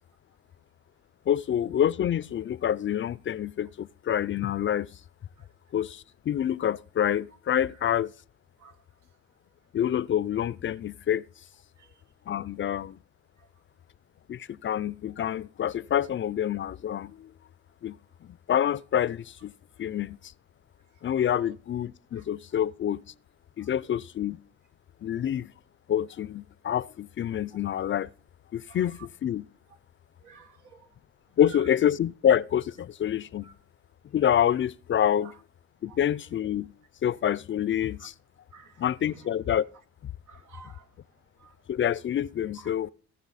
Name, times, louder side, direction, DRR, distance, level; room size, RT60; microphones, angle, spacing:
voice 1, 1.3-4.9 5.7-8.1 9.7-11.2 12.3-13.0 14.3-17.3 17.8-18.0 18.2-19.5 19.8-20.2 21.0-23.0 23.6-24.4 25.0-25.5 25.9-28.1 28.5-29.4 31.4-33.5 34.1-35.3 35.8-36.7 37.0-38.1 38.8-39.7 41.7-42.9, left 10 dB, 40° left, 0.4 m, -27 dB
voice 2, 30.2-30.9 31.5-31.6 33.4-33.5 35.2-35.3 35.9-36.0 38.5-38.9 40.3-40.9 41.4-41.5, right 7 dB, 85° right, 1.6 m, -51 dB
17.0 x 6.7 x 4.1 m
cardioid pair, 90°, 30 cm